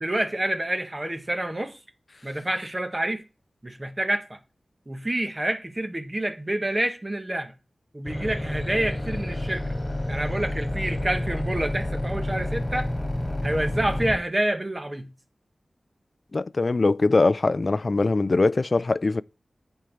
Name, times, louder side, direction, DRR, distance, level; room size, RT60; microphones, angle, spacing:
voice 1, 0.0-1.8 2.2-3.2 3.6-4.4 4.9-7.5 7.9-9.7 10.1-12.9 13.4-15.1, right 1 dB, 25° right, 1.1 m, -28 dB
sound 1, 8.0-14.2, left 1 dB, 25° left, 2.5 m, -29 dB
voice 2, 16.3-19.2, left 3 dB, 50° left, 0.3 m, -22 dB
9.8 x 4.5 x 5.1 m
wide cardioid pair, 90°, 0 cm